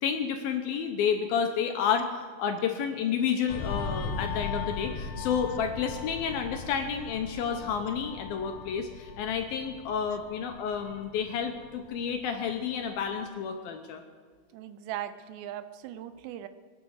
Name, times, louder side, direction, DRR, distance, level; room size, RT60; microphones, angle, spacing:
voice 1, 0.0-14.0, left 7 dB, 70° left, 5 dB, 2.4 m, -30 dB
sound 1, 3.5-12.5 12.9-13.1, left 5 dB, 85° left, 1.5 m, -38 dB
voice 2, 14.5-16.5, right 11 dB, 80° right, 12 dB, 2.9 m, -39 dB
22.5 x 9.7 x 6.4 m, 1.5 s
omnidirectional pair, 5.1 m